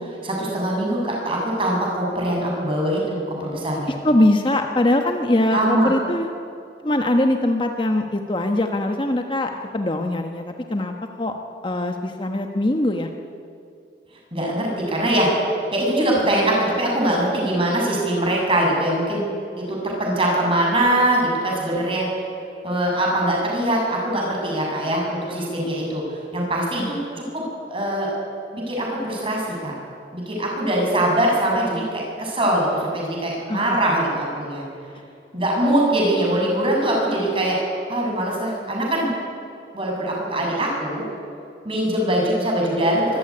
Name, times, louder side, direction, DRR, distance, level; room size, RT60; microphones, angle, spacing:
voice 1, 0.0-3.9 5.5-5.9 14.3-19.2 19.6-22.1 22.6-26.0 26.3-27.4 27.7-28.1 28.5-29.7 30.1-34.6 35.3-37.6 37.9-39.1 39.7-41.0 41.6-43.2, right 1 dB, 30° right, -2 dB, 7.2 m, -22 dB
voice 2, 3.9-6.3 6.8-11.3 11.6-13.1 26.8-27.2 33.5-33.8, left 1 dB, 25° left, 4 dB, 1.1 m, -22 dB
24.0 x 15.5 x 9.8 m, 2.5 s
head